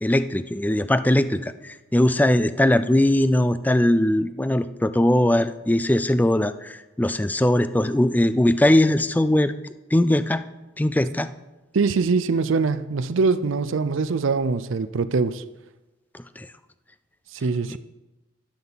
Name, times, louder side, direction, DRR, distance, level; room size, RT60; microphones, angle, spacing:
voice 1, 0.0-9.5 9.9-10.4 10.8-11.3 16.1-16.5 17.7-17.8, left 1 dB, 10° left, 0.3 m, -20 dB
voice 2, 11.7-15.4 17.3-17.8, right 4 dB, 70° right, 0.5 m, -23 dB
12.5 x 11.5 x 4.0 m
head